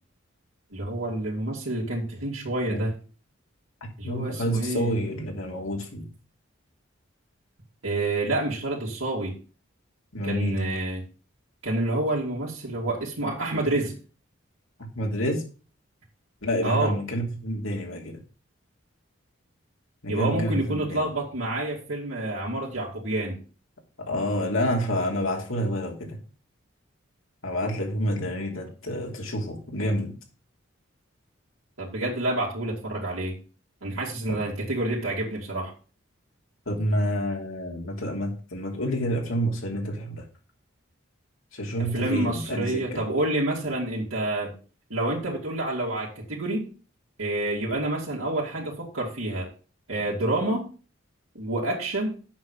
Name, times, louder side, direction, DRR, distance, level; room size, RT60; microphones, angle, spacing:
voice 1, 0.7-2.9 4.0-4.9 7.8-9.3 10.2-11.0 11.6-13.9 16.6-17.0 20.1-23.4 31.8-33.3 33.8-35.7 41.8-44.5 44.9-46.7 47.2-49.5 49.9-50.7 51.3-52.1, right 2 dB, 85° right, 2.9 m, -28 dB
voice 2, 4.0-6.1 10.1-10.6 14.9-15.4 16.4-18.2 20.0-21.0 24.0-26.2 27.4-30.2 34.3-34.4 36.7-40.2 41.5-43.0, equal, 85° left, 3.1 m, -28 dB
8.7 x 5.8 x 7.4 m
head